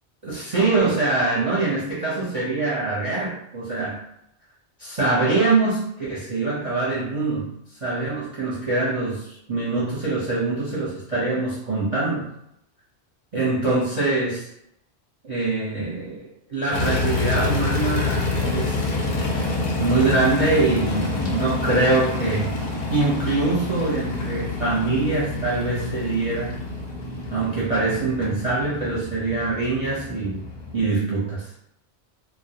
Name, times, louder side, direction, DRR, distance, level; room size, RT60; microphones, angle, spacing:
voice 1, 0.2-4.0 4.8-7.5 7.8-12.3 13.3-14.5 15.2-16.2 16.5-18.9 19.8-22.5 22.9-26.5 27.3-30.5 30.7-31.5, right 3 dB, 35° right, -8 dB, 0.6 m, -24 dB
sound 1, 16.7-30.9, left 2 dB, 55° left, 0.5 m, -27 dB
2.1 x 2.1 x 2.8 m, 0.78 s
omnidirectional pair, 1.1 m